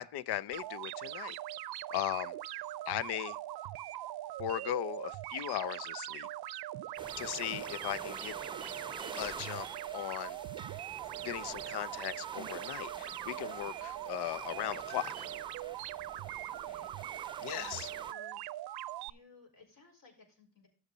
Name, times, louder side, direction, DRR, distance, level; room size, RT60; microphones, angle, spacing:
voice 1, 0.0-1.4 1.9-2.3 2.9-3.4 4.4-6.3 7.2-8.3 9.2-9.7 9.9-10.4 11.2-15.3 17.4-17.9, left 12 dB, 85° left, 0.6 m, -37 dB
sound 1, 0.5-19.1, right 14 dB, 75° right, 0.5 m, -41 dB
sound 2, 7.0-18.1, right 4 dB, 10° right, 0.7 m, -48 dB
voice 2, 16.5-16.9 17.5-18.4 19.1-20.7, left 4 dB, 55° left, 4.9 m, -57 dB
12.5 x 7.3 x 4.0 m
cardioid pair, 120°, 38 cm